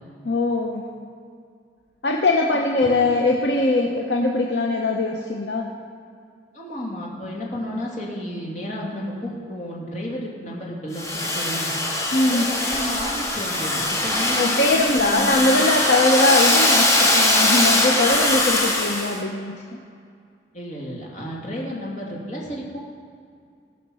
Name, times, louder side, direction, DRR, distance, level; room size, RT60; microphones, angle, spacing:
voice 1, 0.2-0.8 2.0-5.7 12.1-12.5 14.4-19.8, left 2 dB, 70° left, 1 dB, 0.8 m, -21 dB
voice 2, 6.5-11.0 11.3-11.7 12.2-15.6 20.5-22.8, equal, 45° left, -3 dB, 2.5 m, -32 dB
Domestic sounds home sounds, 10.9-19.2, left 1 dB, 15° left, 1.5 m, -21 dB
16.5 x 5.9 x 6.3 m, 2.3 s
head